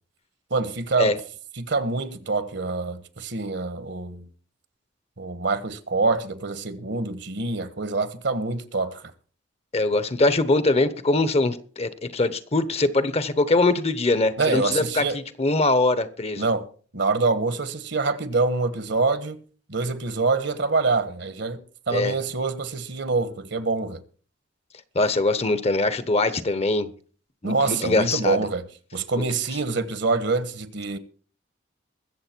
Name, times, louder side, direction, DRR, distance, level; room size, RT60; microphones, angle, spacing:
voice 1, 0.5-1.2 1.6-4.3 5.2-9.0 14.4-15.2 16.4-16.7 16.9-19.4 19.7-24.0 27.4-28.7 28.9-31.0, right 3 dB, 65° right, 1.4 m, -25 dB
voice 2, 9.7-16.5 21.9-22.1 24.9-26.9 27.4-28.4, left 2 dB, 35° left, 1.0 m, -22 dB
22.0 x 7.7 x 4.5 m
head